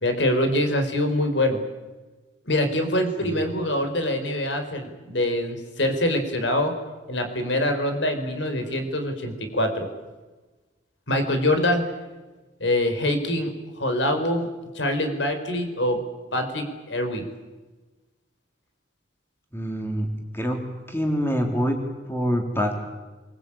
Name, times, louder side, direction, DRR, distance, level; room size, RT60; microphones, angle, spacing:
voice 1, 0.0-1.6 2.5-6.7 7.1-9.9 11.1-11.8 12.6-14.5 14.7-16.0 16.3-17.3, left 1 dB, 75° left, 6 dB, 4.7 m, -24 dB
voice 2, 19.5-20.1 20.3-20.6 20.9-21.8 22.1-22.7, equal, 15° left, 3 dB, 3.7 m, -25 dB
28.5 x 23.0 x 8.9 m, 1.2 s
head